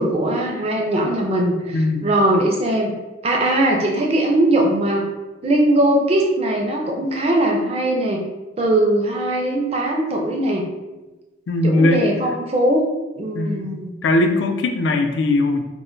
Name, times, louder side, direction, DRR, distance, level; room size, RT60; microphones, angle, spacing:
voice 1, 0.0-2.9 3.2-5.0 5.4-8.2 8.6-10.7 11.6-12.8 13.2-13.9, right 1 dB, 30° right, 1 dB, 0.3 m, -20 dB
voice 2, 1.7-2.1 11.5-12.0 13.3-13.7 14.0-15.6, left 2 dB, 75° left, 5 dB, 0.3 m, -19 dB
2.1 x 2.1 x 3.7 m, 1.1 s
head